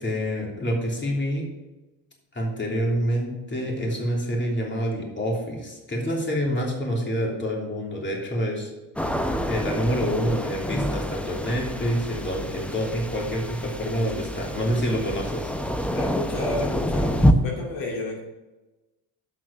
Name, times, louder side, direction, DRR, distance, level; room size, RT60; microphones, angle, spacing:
voice 1, 0.0-1.4 2.3-8.7 9.4-15.5, equal, 20° left, -2 dB, 3.2 m, -27 dB
sound 1, 9.0-17.3, equal, 5° left, 0.7 m, -27 dB
voice 2, 15.9-18.2, left 2 dB, 60° left, -1 dB, 2.6 m, -31 dB
7.8 x 6.1 x 7.0 m, 1.1 s
hypercardioid pair, 75°, 49 cm